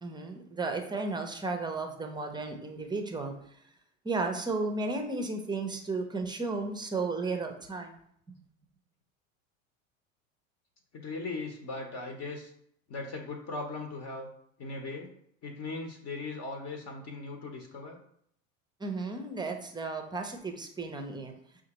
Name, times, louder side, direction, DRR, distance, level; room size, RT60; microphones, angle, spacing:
voice 1, 0.0-3.3 4.0-8.0 8.3-8.4 18.8-21.3, right 3 dB, 10° right, 4 dB, 0.6 m, -34 dB
voice 2, 10.9-12.5 12.9-14.3 14.6-15.1 15.4-18.0, left 3 dB, 40° left, 3 dB, 0.9 m, -38 dB
5.8 x 2.4 x 2.9 m, 0.68 s
hypercardioid pair, 75°, 40 cm